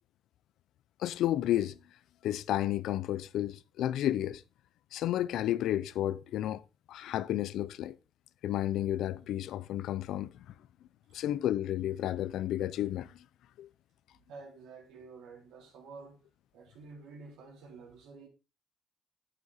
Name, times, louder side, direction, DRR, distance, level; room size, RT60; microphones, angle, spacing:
voice 1, 1.0-1.8 2.2-4.4 4.9-6.6 6.9-8.0 8.4-10.5 11.1-13.2 13.6-13.7, left 12 dB, 85° left, 0.5 m, -32 dB
voice 2, 14.3-16.2 16.5-18.3, right 4 dB, 90° right, 3.8 m, -50 dB
8.4 x 8.3 x 4.0 m
cardioid pair, 90°, 0 cm